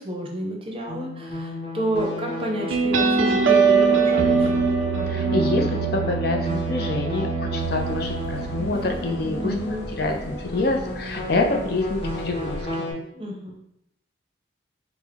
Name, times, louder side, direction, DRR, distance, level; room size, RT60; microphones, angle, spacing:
voice 1, 0.0-4.5 9.4-9.8 13.1-13.6, equal, 30° right, 0 dB, 0.6 m, -30 dB
sound 1, 0.9-12.9, left 1 dB, 30° left, 1.0 m, -33 dB
sound 2, 2.7-9.9, right 5 dB, 85° right, 0.4 m, -23 dB
voice 2, 5.1-5.7 5.9-9.5 10.0-12.9, left 2 dB, 55° left, 3 dB, 0.5 m, -26 dB
sound 3, 7.6-12.6, equal, 90° left, 1.0 m, -38 dB
4.9 x 2.1 x 3.4 m, 0.78 s
head